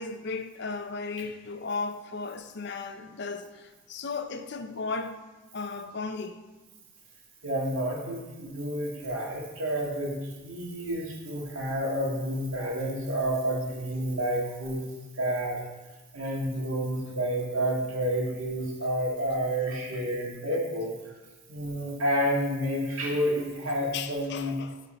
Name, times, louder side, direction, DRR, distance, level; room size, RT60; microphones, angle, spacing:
voice 1, 0.0-5.2 5.5-6.4 23.9-24.8, left 4 dB, 55° left, 0.5 m, -35 dB
voice 2, 7.4-10.1 10.4-14.8 15.2-15.6 16.1-20.9 21.5-24.5, equal, 85° right, 1.9 m, -29 dB
10.0 x 4.3 x 4.2 m
head